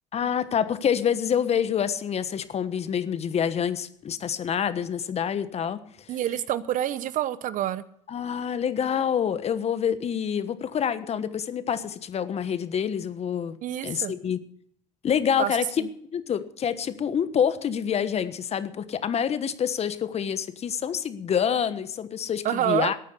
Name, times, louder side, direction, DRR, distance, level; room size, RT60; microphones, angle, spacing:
voice 1, 0.1-5.8 8.1-13.6 13.8-14.4 15.0-15.7 16.1-23.0, left 8 dB, 40° left, 13 dB, 1.3 m, -27 dB
voice 2, 6.1-7.8 13.6-14.1 15.4-15.9 22.4-22.9, right 11 dB, 55° right, 16 dB, 0.9 m, -27 dB
14.0 x 9.0 x 8.2 m, 0.66 s
hypercardioid pair, 75°, 16 cm